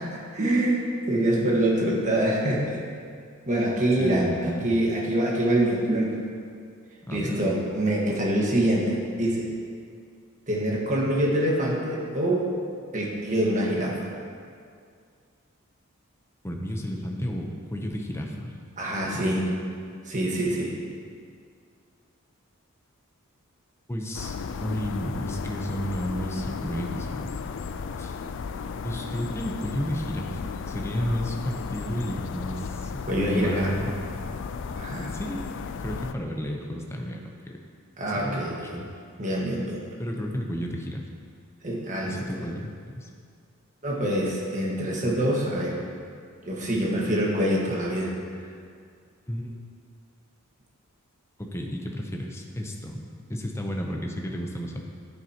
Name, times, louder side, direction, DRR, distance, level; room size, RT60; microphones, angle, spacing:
voice 1, 0.0-2.8 3.5-6.2 7.1-9.5 10.5-12.5 12.9-14.1 18.8-19.5 20.1-20.8 33.1-33.8 34.7-35.1 38.0-38.8 39.2-39.8 41.6-42.5 43.8-45.8 46.4-48.2, right 1 dB, 35° right, -3 dB, 1.5 m, -25 dB
voice 2, 4.0-4.7 7.0-7.4 16.4-18.5 19.2-19.6 23.9-24.3 24.6-27.3 28.0-28.2 28.8-33.9 35.1-35.5 35.8-37.3 38.0-38.5 38.7-38.9 40.0-41.0 42.0-43.1 49.3-49.5 51.5-53.0 53.3-54.8, equal, 10° left, 1 dB, 0.7 m, -32 dB
sound 1, 24.1-36.1, left 5 dB, 60° left, 0.4 m, -35 dB
10.5 x 9.1 x 2.9 m, 2.2 s
head